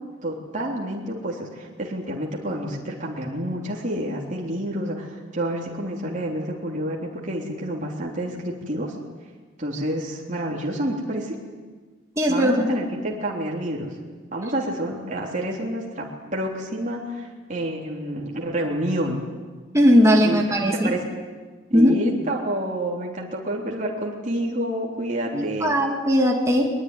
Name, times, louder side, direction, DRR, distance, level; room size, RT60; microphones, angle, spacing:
voice 1, 0.2-8.9 9.6-11.4 12.3-13.9 14.3-16.0 16.3-19.3 20.2-20.4 20.8-21.0 21.7-25.8, right 1 dB, 40° right, -2 dB, 3.6 m, -28 dB
voice 2, 12.2-12.7 19.7-20.9 21.7-22.0 25.3-26.7, equal, 15° right, 0 dB, 2.3 m, -18 dB
22.0 x 22.0 x 9.9 m, 1.4 s
head